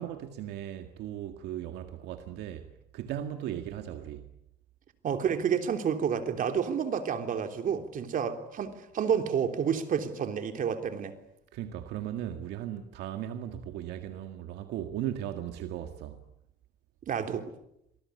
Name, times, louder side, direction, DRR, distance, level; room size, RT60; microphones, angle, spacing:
voice 1, 0.0-2.7 2.9-4.2 11.5-16.2, right 11 dB, 85° right, 1.9 m, -37 dB
voice 2, 5.0-11.1 17.1-17.5, right 7 dB, 55° right, 3.4 m, -29 dB
27.0 x 20.0 x 9.7 m
cardioid pair, 110°, 17 cm